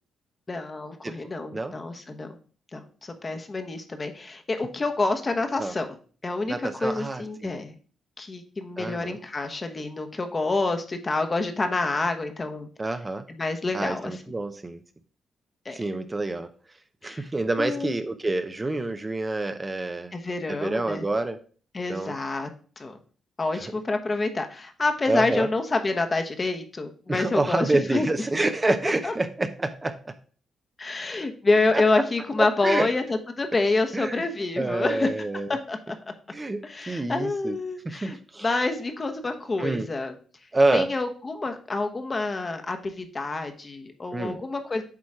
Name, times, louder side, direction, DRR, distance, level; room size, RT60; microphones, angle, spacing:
voice 1, 0.5-2.4 2.7-6.0 6.2-7.7 8.2-12.7 13.3-14.2 15.6-15.8 17.0-17.2 17.6-17.9 20.1-21.1 21.7-22.5 22.8-23.0 23.4-28.1 29.0-29.1 30.8-35.1 35.5-36.0 36.6-38.2 38.4-40.1 40.7-44.8, left 3 dB, 30° left, 7 dB, 1.0 m, -27 dB
voice 2, 6.5-7.6 8.8-9.2 12.8-13.2 13.7-14.8 15.7-16.5 17.0-20.1 20.5-21.4 21.9-22.1 23.5-23.6 25.1-25.5 27.1-30.1 31.7-31.8 32.4-32.9 33.9-34.2 34.6-35.5 36.3-37.6 37.8-38.5 39.6-39.9 40.5-40.9 44.1-44.4, right 2 dB, 25° right, 9 dB, 0.6 m, -27 dB
8.4 x 3.1 x 4.8 m, 0.42 s
cardioid pair, 75°, 0 cm